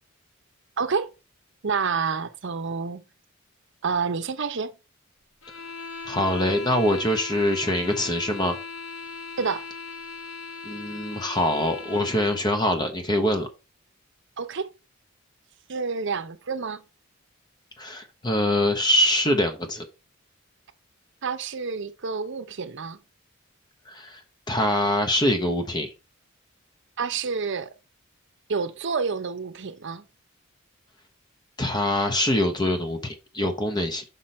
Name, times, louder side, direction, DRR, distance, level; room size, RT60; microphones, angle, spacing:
voice 1, 0.8-1.1 1.6-3.0 3.8-4.8 9.4-9.6 14.4-14.7 15.7-16.8 21.2-23.0 27.0-27.7 28.5-30.1, right 5 dB, 60° right, 0.7 m, -28 dB
sound 1, 5.4-12.5, left 4 dB, 65° left, 1.2 m, -38 dB
voice 2, 6.1-8.6 10.6-13.5 17.8-19.9 23.9-24.2 24.5-25.9 31.6-34.0, left 1 dB, 20° left, 0.9 m, -24 dB
6.0 x 5.5 x 4.2 m
head